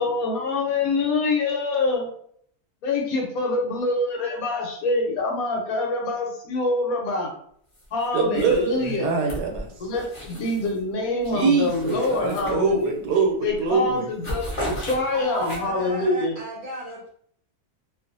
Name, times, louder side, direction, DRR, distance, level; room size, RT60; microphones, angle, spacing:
voice 1, 0.0-2.1 2.8-7.3 7.9-9.1 9.8-12.9 13.4-16.3, left 2 dB, 70° left, 0 dB, 1.1 m, -25 dB
sound 1, 7.7-8.1 8.3-10.8 11.2-13.1 13.5-13.7 14.0-15.9, equal, 30° left, 0.6 m, -36 dB
voice 2, 8.1-9.7 11.3-14.1, right 5 dB, 85° right, 2 dB, 1.2 m, -23 dB
voice 3, 15.1-17.1, right 1 dB, 60° right, -3 dB, 0.8 m, -34 dB
2.6 x 2.4 x 2.5 m, 0.63 s
omnidirectional pair, 1.7 m